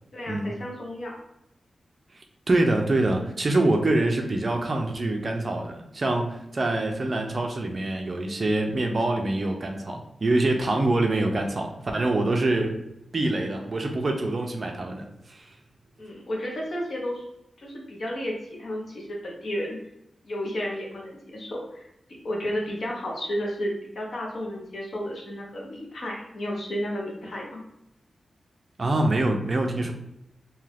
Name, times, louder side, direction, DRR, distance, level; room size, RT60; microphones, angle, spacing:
voice 1, 0.1-1.1 16.0-17.2 17.6-19.8 20.2-21.9 22.2-27.6, equal, 55° left, -2 dB, 0.8 m, -32 dB
voice 2, 2.5-12.8 13.1-15.5 28.8-29.9, right 2 dB, 35° right, 3 dB, 0.4 m, -25 dB
2.7 x 2.4 x 3.3 m, 0.82 s
wide cardioid pair, 165°, 0 cm